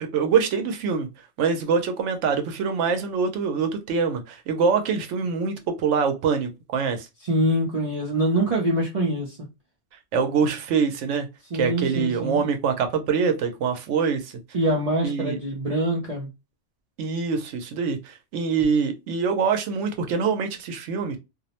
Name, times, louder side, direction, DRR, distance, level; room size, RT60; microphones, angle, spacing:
voice 1, 0.0-7.1 10.1-11.3 11.5-14.4 15.0-15.4 17.0-21.2, right 6 dB, 85° right, 0.9 m, -24 dB
voice 2, 7.2-9.4 11.5-12.4 14.5-16.3, right 1 dB, 45° right, 0.5 m, -24 dB
2.5 x 2.0 x 2.8 m
omnidirectional pair, 1.2 m